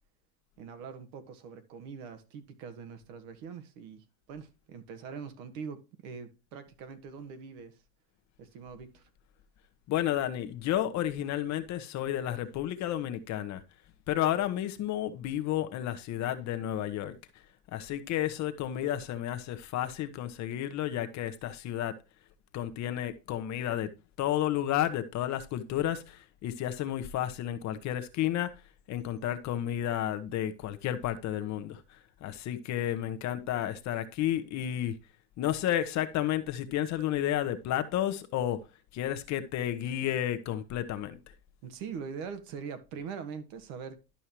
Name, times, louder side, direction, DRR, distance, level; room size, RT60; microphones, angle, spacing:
voice 1, 0.6-7.8 8.4-9.1 41.6-44.2, right 6 dB, 60° right, 1.6 m, -43 dB
voice 2, 9.9-13.6 14.1-17.2 17.7-21.9 22.5-23.9 24.2-28.5 28.9-35.0 35.4-38.6 38.9-41.2, left 12 dB, 40° left, 0.9 m, -31 dB
11.5 x 5.4 x 3.0 m
supercardioid pair, 130°, 45 cm